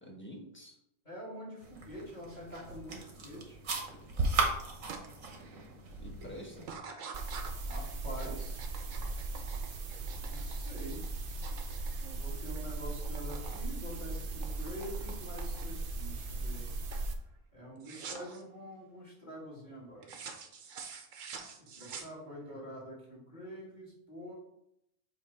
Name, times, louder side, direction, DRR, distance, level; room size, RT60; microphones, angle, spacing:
voice 1, 0.0-0.8 6.0-6.7, equal, 10° left, -1 dB, 1.2 m, -47 dB
voice 2, 1.0-3.6 7.7-8.7 10.2-11.0 12.0-16.7 17.5-20.2 21.5-24.3, equal, 35° left, -6 dB, 2.5 m, -46 dB
sound 1, 1.6-6.8, right 3 dB, 90° right, 1.5 m, -36 dB
sound 2, 4.9-5.1 5.5-5.9 6.6-12.7 12.9-13.6 13.9-15.9 16.4-16.7 16.9-17.1 17.8-18.4 20.0-22.5, right 5 dB, 70° right, 1.2 m, -47 dB
sound 3, 7.1-17.1, right 3 dB, 50° right, 0.8 m, -38 dB
7.9 x 3.1 x 4.6 m, 0.78 s
omnidirectional pair, 1.4 m